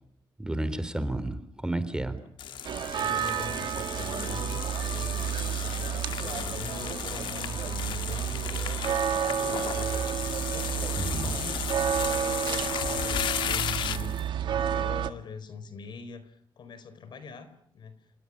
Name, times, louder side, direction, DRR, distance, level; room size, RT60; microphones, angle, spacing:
voice 1, 0.4-2.2 11.0-11.3, right 1 dB, 10° right, 12 dB, 3.6 m, -31 dB
sound 1, 2.4-14.2, left 9 dB, 90° left, 1.5 m, -35 dB
sound 2, 2.6-15.1, right 9 dB, 80° right, 1.9 m, -31 dB
voice 2, 2.9-9.9 10.5-11.6 11.9-17.5 17.7-17.9, left 5 dB, 70° left, 12 dB, 4.5 m, -43 dB
28.5 x 18.0 x 10.0 m, 0.67 s
cardioid pair, 85°, 8 cm